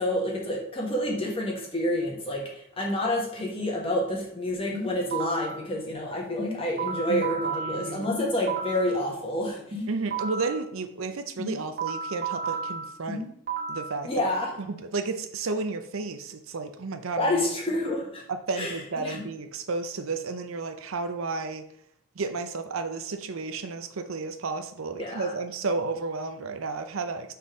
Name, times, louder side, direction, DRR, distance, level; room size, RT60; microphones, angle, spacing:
voice 1, 0.0-9.9 14.0-14.5 17.2-18.2 18.6-19.2 25.0-25.3, left 1 dB, 25° left, -1 dB, 1.4 m, -28 dB
sound 1, 4.7-5.6 6.4-8.9 9.7-10.6 11.4-13.9, right 4 dB, 40° right, 1.1 m, -32 dB
voice 2, 7.1-8.1 9.9-13.3 13.7-14.1 14.7-17.4 18.3-21.7 22.1-27.3, right 3 dB, 70° right, 8 dB, 0.6 m, -32 dB
5.7 x 4.2 x 4.8 m, 0.73 s
head